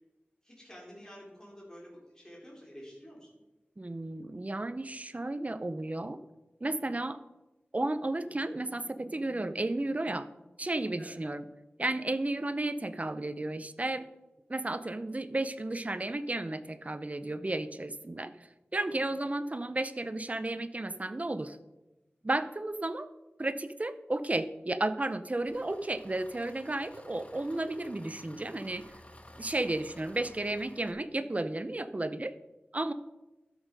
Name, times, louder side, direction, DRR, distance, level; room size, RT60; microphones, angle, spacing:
voice 1, 0.4-3.3 11.0-11.2 18.7-19.0, equal, 15° left, -4 dB, 3.7 m, -50 dB
voice 2, 3.8-6.2 6.6-7.2 7.7-10.3 10.6-11.4 11.8-14.1 14.5-21.6 22.2-23.1 23.4-28.8 29.4-32.4 32.7-32.9, right 2 dB, 35° right, 11 dB, 0.7 m, -33 dB
Engine, 25.5-30.9, left 1 dB, 30° left, 1.1 m, -53 dB
12.5 x 6.5 x 5.2 m, 1.0 s
wide cardioid pair, 60°, 4 cm